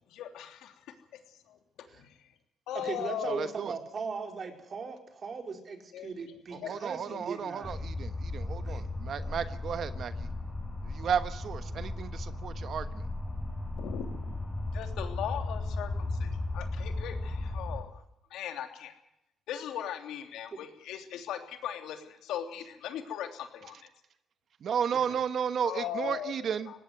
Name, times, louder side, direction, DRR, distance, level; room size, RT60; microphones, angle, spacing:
voice 1, 0.1-0.7 1.5-1.6 2.0-2.1 2.7-3.5 5.9-6.1 6.6-6.9 7.1-7.2 13.8-14.4 14.7-18.0 18.3-18.9 19.5-23.9 25.6-26.3 26.7-26.8, left 10 dB, 85° left, 6 dB, 3.1 m, -38 dB
voice 2, 2.7-7.7 8.6-8.9 9.2-9.5 25.0-25.2, right 4 dB, 45° right, 4 dB, 4.6 m, -39 dB
voice 3, 3.3-3.7 6.5-10.3 10.8-13.0 24.6-26.8, right 7 dB, 60° right, 11 dB, 1.3 m, -33 dB
sound 1, 7.6-17.8, left 2 dB, 10° left, 6.5 m, -36 dB
19.0 x 17.0 x 9.5 m, 0.84 s
cardioid pair, 90°, 0 cm